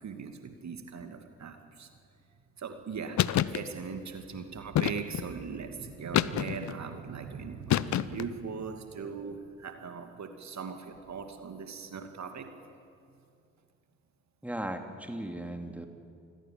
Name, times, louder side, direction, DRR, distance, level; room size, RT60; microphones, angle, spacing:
voice 1, 0.0-1.9 2.6-3.2 3.5-12.5, right 6 dB, 50° right, 6 dB, 2.5 m, -40 dB
sound 1, 3.2-3.6 4.8-5.3 6.1-6.8 7.7-8.3, left 11 dB, 50° left, 0.8 m, -27 dB
voice 2, 14.4-15.9, right 1 dB, 5° right, 5 dB, 2.9 m, -37 dB
27.5 x 21.0 x 7.7 m, 2.4 s
figure-of-eight pair, 40°, 36 cm